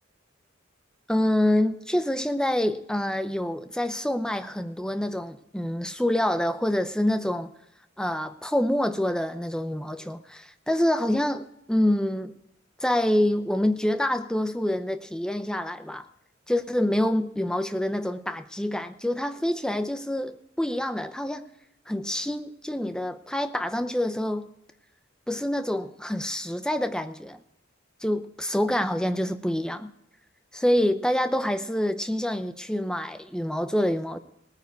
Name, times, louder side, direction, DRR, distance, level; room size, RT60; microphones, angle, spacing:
voice 1, 1.1-7.5 8.0-12.4 12.8-16.1 16.5-21.4 21.9-24.5 25.3-27.4 28.0-29.9 30.5-34.2, left 1 dB, 5° left, 0.7 m, -26 dB
18.5 x 9.5 x 4.7 m
head